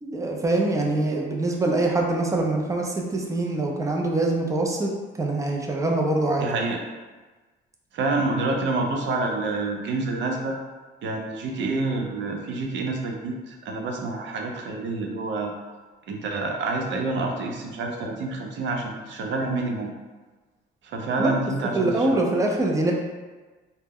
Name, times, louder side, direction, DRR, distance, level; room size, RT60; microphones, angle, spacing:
voice 1, 0.0-4.9 5.2-6.5 21.2-21.3 21.7-22.9, right 2 dB, 15° right, 0 dB, 0.4 m, -24 dB
voice 2, 6.4-6.8 7.9-10.6 11.0-15.5 16.1-19.9 20.8-22.2, right 3 dB, 70° right, 2 dB, 0.5 m, -28 dB
2.2 x 2.1 x 3.4 m, 1.3 s
cardioid pair, 90°, 20 cm